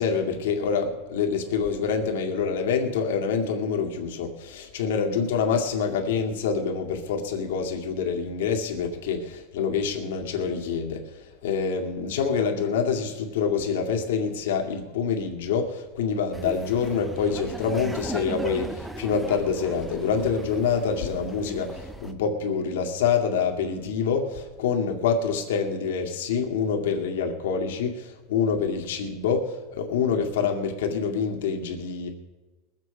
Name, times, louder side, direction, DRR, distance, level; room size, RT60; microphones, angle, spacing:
voice 1, 0.0-32.1, left 6 dB, 80° left, 2 dB, 2.1 m, -26 dB
Laughter, 16.3-22.1, right 1 dB, 5° right, 0.6 m, -37 dB
21.5 x 7.7 x 5.1 m, 1.2 s
supercardioid pair, 170°, 0 cm